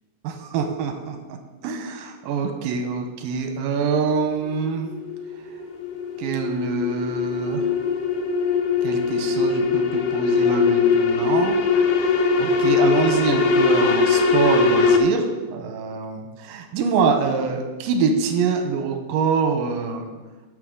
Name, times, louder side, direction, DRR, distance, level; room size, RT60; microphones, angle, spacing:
voice 1, 0.2-1.2 1.6-4.9 6.2-7.7 8.8-11.6 12.0-20.1, right 5 dB, 75° right, 4 dB, 2.1 m, -25 dB
sound 1, 4.5-15.0, left 5 dB, 75° left, 2.8 m, -21 dB
19.5 x 6.9 x 3.9 m, 1.3 s
omnidirectional pair, 5.4 m